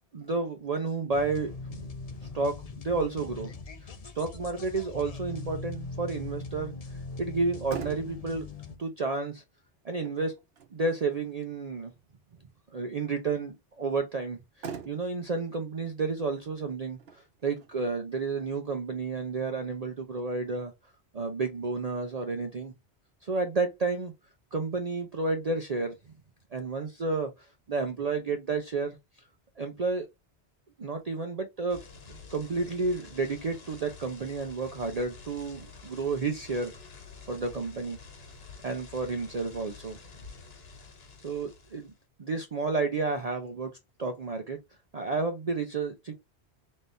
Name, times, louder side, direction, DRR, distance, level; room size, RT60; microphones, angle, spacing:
voice 1, 0.1-1.9 2.3-3.5 3.8-6.7 7.2-8.5 8.8-9.4 9.8-10.3 10.7-11.9 12.7-20.7 21.1-22.7 23.2-24.1 24.5-26.0 26.5-29.0 29.6-30.1 30.8-31.8 32.1-36.8 37.3-38.0 38.6-40.0 41.2-41.9 42.2-43.7 44.0-44.6 44.9-46.1, right 3 dB, 45° right, 0.6 m, -31 dB
sound 1, 1.1-8.8, left 3 dB, 40° left, 0.6 m, -41 dB
Motor vehicle (road), 7.3-20.3, right 6 dB, 65° right, 1.1 m, -48 dB
sound 2, 31.7-42.0, left 4 dB, 65° left, 1.3 m, -49 dB
4.1 x 3.7 x 2.5 m
omnidirectional pair, 1.2 m